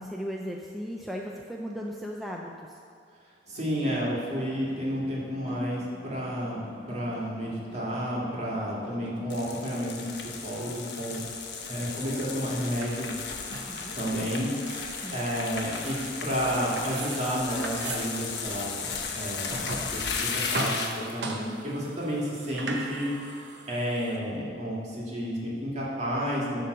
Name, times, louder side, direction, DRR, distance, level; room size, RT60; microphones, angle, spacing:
voice 1, 0.0-2.8 13.5-14.0 15.0-15.2, equal, ahead, -1 dB, 0.4 m, -37 dB
sound 1, 3.5-12.4, left 1 dB, 85° left, 1.2 m, -49 dB
voice 2, 3.5-11.2 11.7-13.2 13.9-14.8 15.1-23.4 23.7-26.6, equal, 40° right, -5 dB, 2.1 m, -31 dB
sound 2, 9.3-21.1, left 5 dB, 70° left, 0.9 m, -35 dB
sound 3, 10.0-24.2, right 2 dB, 75° right, 1.0 m, -40 dB
11.0 x 3.8 x 6.6 m, 2.4 s
head